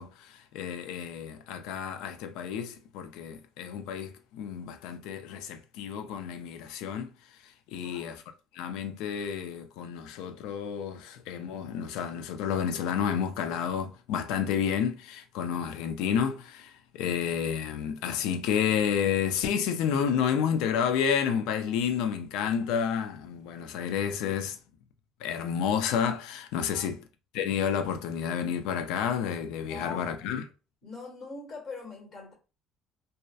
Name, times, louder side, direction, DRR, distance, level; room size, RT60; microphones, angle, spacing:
voice 1, 0.0-7.1 7.4-8.2 8.5-24.6 25.2-27.0 27.3-30.4, left 8 dB, 85° left, 0.4 m, -30 dB
voice 2, 7.7-8.1 26.5-26.9 29.6-30.3 30.8-32.3, left 4 dB, 40° left, 1.2 m, -42 dB
2.7 x 2.0 x 2.3 m
cardioid pair, 140°, 0 cm